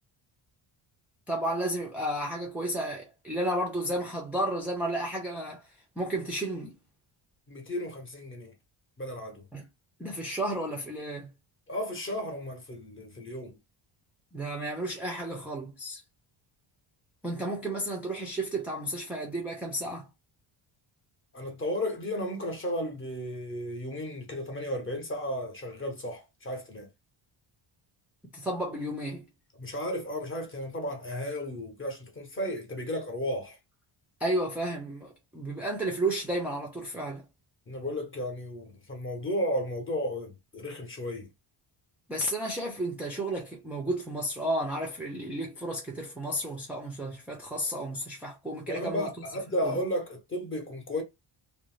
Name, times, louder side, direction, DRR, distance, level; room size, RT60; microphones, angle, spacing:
voice 1, 1.3-5.7 6.0-6.7 9.5-9.7 10.0-11.3 14.3-16.0 17.2-20.1 28.3-29.3 34.2-37.2 42.1-49.1 49.6-49.8, right 1 dB, 5° right, 0.4 m, -32 dB
voice 2, 7.5-8.5 9.0-9.4 11.7-13.6 21.3-26.9 29.6-33.6 37.7-41.3 48.7-51.0, equal, 25° left, 0.8 m, -34 dB
2.5 x 2.0 x 3.0 m
wide cardioid pair, 155°, 49 cm